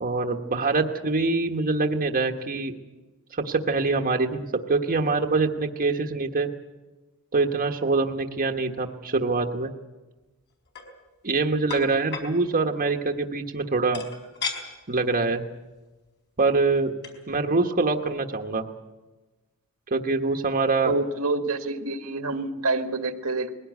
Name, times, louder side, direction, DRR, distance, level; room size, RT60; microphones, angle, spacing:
voice 1, 0.0-2.7 3.4-4.4 4.7-6.5 7.3-9.7 11.2-14.0 14.9-15.5 16.4-16.9 17.3-18.7 19.9-20.9, right 3 dB, 40° right, 3 dB, 1.2 m, -24 dB
sound 1, 10.5-10.9 11.7-12.3 13.9-14.6 15.1-15.2 15.6-15.8 16.8-16.9 17.0-17.2, left 4 dB, 55° left, 4.6 m, -33 dB
voice 2, 20.9-23.5, right 2 dB, 80° right, 7 dB, 1.7 m, -27 dB
21.0 x 17.0 x 9.3 m, 1.2 s
head